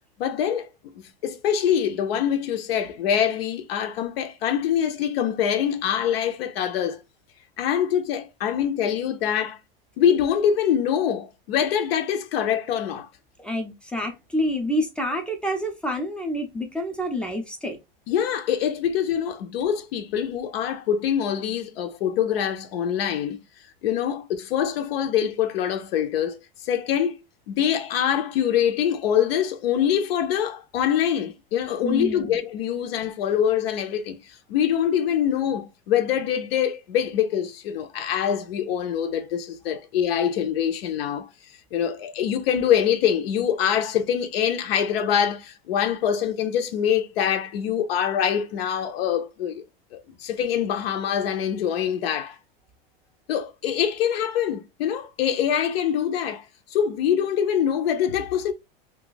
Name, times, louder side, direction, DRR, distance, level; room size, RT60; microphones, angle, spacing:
voice 1, 0.2-0.7 0.9-7.0 7.6-9.6 10.0-13.1 18.1-23.4 23.8-26.4 26.6-27.2 27.5-34.2 34.5-41.3 41.7-49.6 49.9-52.4 53.3-56.4 56.7-58.5, left 9 dB, 85° left, 0.7 m, -24 dB
voice 2, 13.4-17.8 31.8-32.3, equal, 5° left, 0.4 m, -28 dB
2.7 x 2.4 x 3.8 m
supercardioid pair, 145°, 29 cm